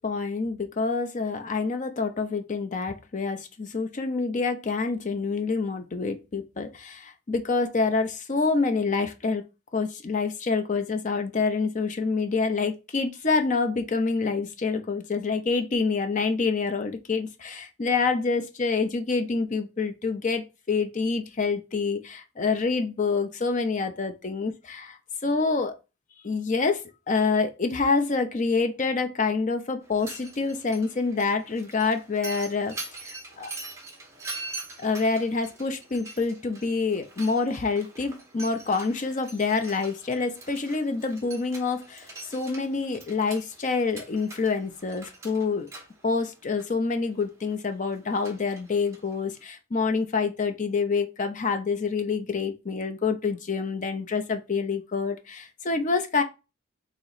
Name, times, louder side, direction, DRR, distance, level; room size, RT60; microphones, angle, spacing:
voice 1, 0.0-9.5 9.7-25.0 25.2-25.7 26.2-33.5 34.8-45.7 46.0-56.2, left 4 dB, 35° left, 0.5 m, -27 dB
Mechanisms, 29.8-49.4, right 3 dB, 15° right, 0.9 m, -44 dB
3.0 x 2.8 x 4.0 m
head